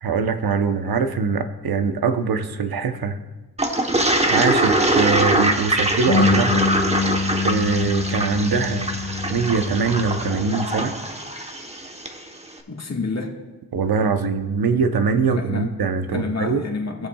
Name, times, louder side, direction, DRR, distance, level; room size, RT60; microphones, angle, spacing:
voice 1, 0.0-3.2 4.3-6.7 7.4-11.0 13.7-16.6, right 5 dB, 65° right, 8 dB, 0.9 m, -22 dB
Toilet flush, 3.6-12.2, right 1 dB, 15° right, 1.0 m, -23 dB
sound 1, 4.6-10.5, left 4 dB, 70° left, 1.1 m, -26 dB
voice 2, 12.7-13.4 15.3-15.7 16.1-17.1, left 4 dB, 40° left, 1 dB, 1.6 m, -28 dB
20.5 x 7.1 x 2.3 m, 1.2 s
cardioid pair, 75°, 39 cm